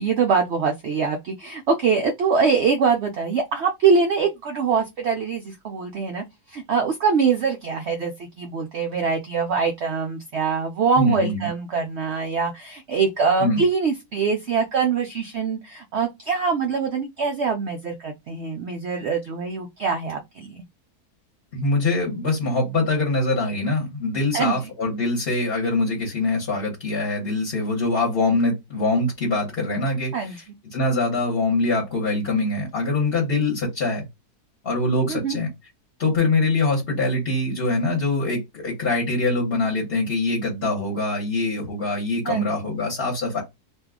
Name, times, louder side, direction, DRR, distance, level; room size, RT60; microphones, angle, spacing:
voice 1, 0.0-20.6 24.3-24.6 30.1-30.4 35.1-35.4 42.3-42.7, right 5 dB, 85° right, 0.6 m, -23 dB
voice 2, 11.0-11.5 13.4-13.6 21.5-30.4 30.7-34.1 34.6-35.5 36.0-43.4, left 2 dB, 45° left, 1.1 m, -23 dB
2.6 x 2.3 x 3.5 m
omnidirectional pair, 1.7 m